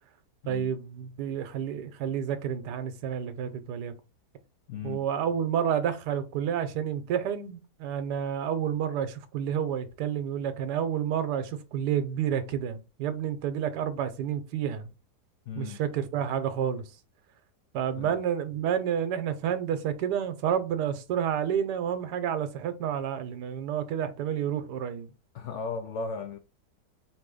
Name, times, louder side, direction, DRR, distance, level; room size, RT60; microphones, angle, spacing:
voice 1, 0.5-3.9 4.8-14.9 15.6-16.8 17.7-25.1, right 9 dB, 80° right, 1.2 m, -30 dB
voice 2, 4.7-5.0 15.5-15.8 17.9-18.2 25.3-26.4, left 5 dB, 80° left, 0.6 m, -36 dB
4.4 x 2.7 x 3.7 m
omnidirectional pair, 1.8 m